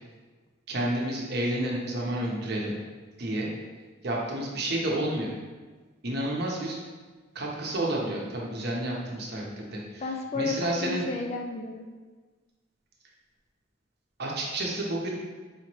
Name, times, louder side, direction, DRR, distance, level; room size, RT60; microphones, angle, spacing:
voice 1, 0.7-2.7 3.2-3.5 4.0-5.3 6.0-6.8 7.3-10.0 10.3-11.1 14.2-15.1, right 1 dB, 50° right, -2 dB, 0.8 m, -30 dB
voice 2, 10.0-11.9, left 3 dB, 30° left, 2 dB, 0.3 m, -32 dB
5.0 x 3.0 x 3.0 m, 1.3 s
head